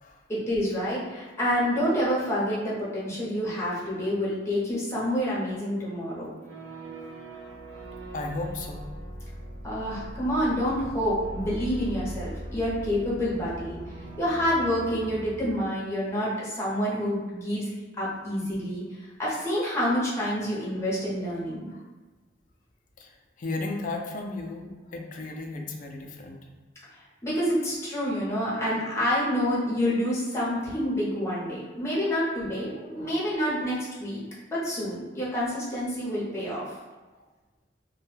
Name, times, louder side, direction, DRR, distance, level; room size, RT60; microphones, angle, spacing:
voice 1, 0.3-6.3 9.6-13.8 14.2-17.7 18.0-18.8 19.2-21.7 27.2-34.2 34.5-36.6, equal, 15° left, -7 dB, 0.7 m, -28 dB
sound 1, 6.4-15.5, right 1 dB, 85° right, 0.6 m, -40 dB
voice 2, 8.1-8.9 21.7-21.8 23.0-26.4 32.8-33.3, left 2 dB, 45° left, 2 dB, 0.4 m, -35 dB
2.1 x 2.1 x 3.1 m, 1.2 s
head